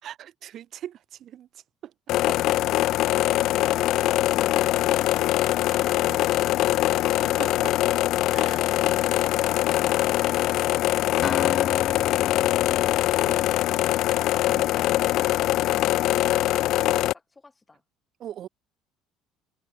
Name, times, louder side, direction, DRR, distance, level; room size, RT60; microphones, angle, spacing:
voice 1, 0.0-1.9 2.3-2.4 2.8-2.9 5.7-6.6 7.2-7.8 8.3-8.8 13.2-13.4 14.5-14.7 18.2-18.5, right 11 dB, 50° right, 6.9 m, -41 dB
sound 1, 2.1-17.1, left 15 dB, 65° left, 0.7 m, -23 dB
Acoustic guitar, 11.2-15.1, left 8 dB, 40° left, 1.7 m, -35 dB
voice 2, 16.9-17.8, left 3 dB, 15° left, 7.6 m, -53 dB
cardioid pair, 115°, 0 cm